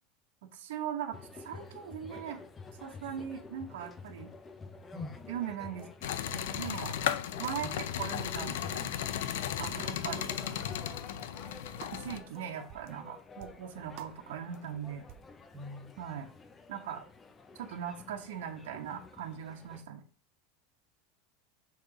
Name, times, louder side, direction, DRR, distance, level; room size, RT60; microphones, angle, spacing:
voice 1, 0.5-1.2 1.4-2.4 2.8-4.3 5.3-5.9 6.5-6.9 7.4-7.7 8.0-8.9 9.6-10.3 11.9-15.1 16.0-16.3 16.7-17.0 17.5-20.0, right 9 dB, 85° right, 4 dB, 1.1 m, -39 dB
sound 1, 1.1-19.8, left 4 dB, 15° left, 0.6 m, -50 dB
voice 2, 4.9-5.3 9.8-10.2 12.1-12.6 15.5-16.0, left 2 dB, 10° right, -4 dB, 1.3 m, -45 dB
sound 2, 5.8-5.9 6.3-6.5 6.9-7.0 7.4-7.6 8.0-8.1 8.4-8.6 9.1-9.3 9.6-9.8 10.2-10.3 10.7-10.9 11.2-11.3 11.8-12.0 12.3-12.4 12.7-12.9 13.4-13.6 14.0-14.1 14.5-14.6 15.1-15.3, right 12 dB, 50° right, 0.5 m, -50 dB
sound 3, 6.0-12.2, left 10 dB, 85° left, 0.6 m, -35 dB
6.5 x 3.3 x 4.9 m, 0.40 s
supercardioid pair, 150°, 0 cm